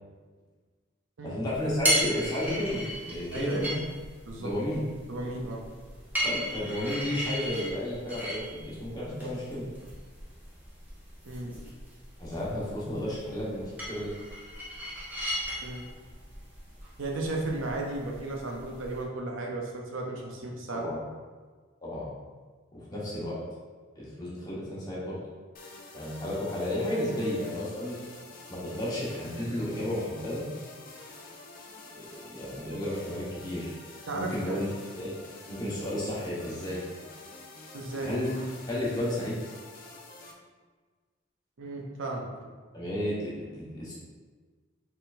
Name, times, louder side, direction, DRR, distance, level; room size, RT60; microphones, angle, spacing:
voice 1, 1.2-3.7 4.4-4.8 6.2-9.7 12.2-14.1 20.7-21.0 21.8-22.1 22.7-23.4 23.9-25.2 25.9-27.9 28.5-30.4 31.9-33.7 34.1-34.7 35.0-35.1 35.5-36.8 38.0-38.3 38.6-39.4 42.7-43.9, left 1 dB, 20° left, -8 dB, 1.2 m, -32 dB
sound 1, 1.5-19.0, equal, 10° right, 0.9 m, -36 dB
voice 2, 5.1-5.6 11.2-11.6 15.6-15.9 17.0-20.9 34.1-34.6 37.7-38.1 41.6-42.2, right 2 dB, 75° right, 0 dB, 0.7 m, -34 dB
sound 2, 25.5-40.3, left 2 dB, 45° left, 0.5 m, -48 dB
4.4 x 3.8 x 2.6 m, 1.4 s
head